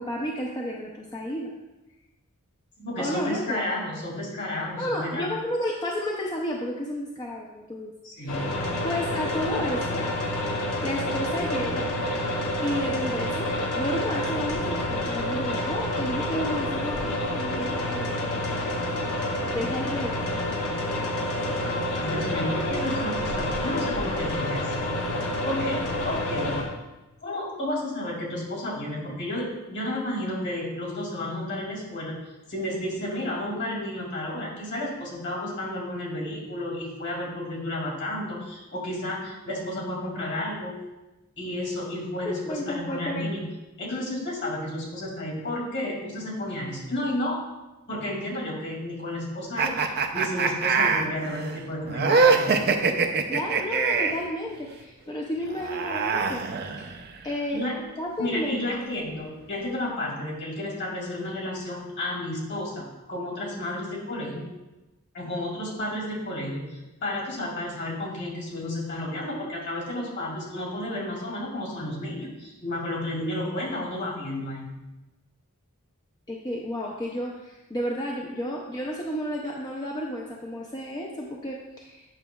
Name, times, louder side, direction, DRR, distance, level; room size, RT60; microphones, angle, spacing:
voice 1, 0.0-1.5 3.0-3.6 4.8-7.9 8.2-8.4 8.8-10.0 10.8-11.9 12.6-13.5 13.7-18.1 19.5-20.5 42.3-43.3 53.3-56.4 57.2-57.6 58.0-58.6 76.3-82.0, equal, 20° left, -2 dB, 0.5 m, -31 dB
voice 2, 2.8-5.3 8.0-8.5 22.0-24.9 25.4-26.6 27.2-32.1 32.5-40.7 41.4-43.4 43.8-47.4 47.9-52.5 57.5-57.8 58.2-64.5 65.1-74.8, left 1 dB, 55° left, -2 dB, 2.4 m, -32 dB
sound 1, 8.3-26.6, left 1 dB, 80° left, 1.1 m, -28 dB
sound 2, 49.6-54.3 55.5-57.2, right 4 dB, 45° right, 0.5 m, -24 dB
8.9 x 6.0 x 2.3 m, 1.1 s
head